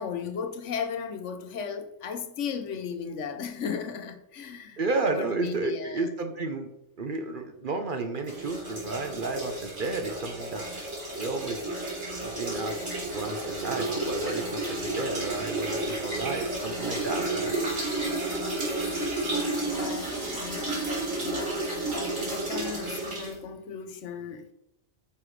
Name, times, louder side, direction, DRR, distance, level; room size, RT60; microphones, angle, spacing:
voice 1, 0.0-4.8 5.1-6.1 18.6-18.7 19.8-21.5 21.8-24.5, left 6 dB, 70° left, 1.1 m, -36 dB
voice 2, 4.8-6.7 7.0-10.7 11.2-11.8 12.2-17.6, right 3 dB, 45° right, 1.0 m, -32 dB
sound 1, 8.2-23.4, right 2 dB, 80° right, 3.6 m, -31 dB
9.5 x 5.7 x 3.2 m
omnidirectional pair, 1.3 m